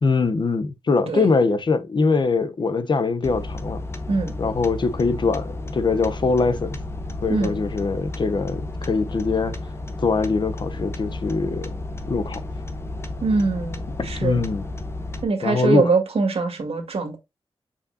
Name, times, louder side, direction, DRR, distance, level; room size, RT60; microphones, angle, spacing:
voice 1, 0.0-3.8 4.4-6.8 7.2-9.5 10.0-11.7 12.1-12.4 14.0-14.7 15.4-15.8, left 4 dB, 50° left, 0.8 m, -22 dB
sound 1, 3.2-15.2, left 2 dB, 25° left, 0.9 m, -32 dB
voice 2, 13.2-14.4 15.2-17.2, right 4 dB, 80° right, 2.0 m, -23 dB
7.1 x 5.3 x 2.7 m
wide cardioid pair, 150°, 10 cm